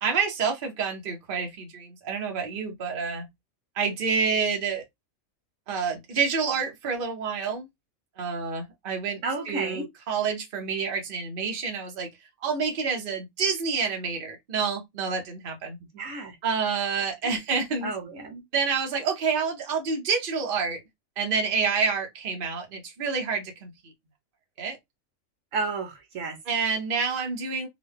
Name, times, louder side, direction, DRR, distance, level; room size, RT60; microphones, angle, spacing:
voice 1, 0.0-3.3 3.8-4.8 5.7-7.7 8.2-9.2 9.5-12.1 12.4-15.8 16.4-17.9 18.5-20.8 21.2-23.9 24.6-24.8 26.5-27.7, right 5 dB, 45° right, 1.0 m, -28 dB
voice 2, 9.2-9.9 15.9-16.4 17.2-17.4 17.8-18.4 25.5-26.4, right 3 dB, 70° right, 1.2 m, -32 dB
3.7 x 2.2 x 3.4 m
omnidirectional pair, 1.4 m